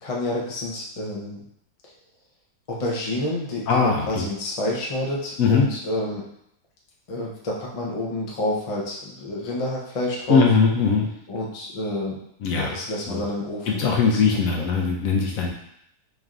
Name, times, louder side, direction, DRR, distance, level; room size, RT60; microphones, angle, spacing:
voice 1, 0.0-1.4 2.7-6.2 7.1-10.5 11.3-12.2 12.5-14.2 14.5-14.6, left 1 dB, 45° left, -3 dB, 0.4 m, -29 dB
voice 2, 3.7-4.2 5.4-5.7 10.3-11.1 12.4-12.7 13.1-13.2 13.7-15.5, left 5 dB, 70° left, 0 dB, 0.9 m, -20 dB
4.1 x 3.4 x 2.5 m, 0.73 s
omnidirectional pair, 1.7 m